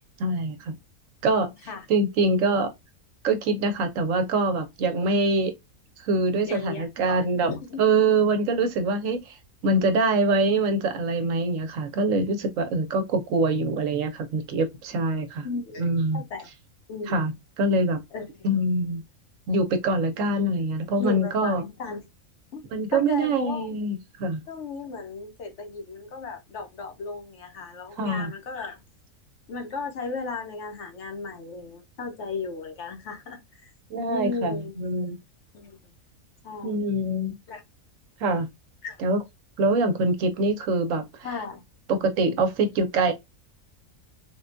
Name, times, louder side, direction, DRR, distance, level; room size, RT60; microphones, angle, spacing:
voice 1, 0.2-0.7 1.2-1.6 1.9-2.7 3.2-5.5 6.0-7.5 7.8-9.4 9.6-15.5 15.8-16.2 17.1-17.3 17.6-18.0 18.4-19.0 19.5-21.6 22.7-24.4 28.0-28.3 33.9-35.2 36.6-37.4 38.2-38.5 39.0-39.2 39.6-41.0 41.9-43.1, right 2 dB, 70° right, 1.0 m, -24 dB
voice 2, 6.5-7.8 15.4-15.8 16.1-16.5 16.9-17.2 18.1-18.3 21.0-22.0 22.5-22.6 22.9-23.8 24.5-28.8 29.5-33.7 34.1-34.8 35.5-35.8 36.4-36.9 37.5-37.6 38.8-39.0 41.2-41.6, left 4 dB, 65° left, 0.9 m, -35 dB
3.6 x 2.2 x 2.5 m
omnidirectional pair, 1.4 m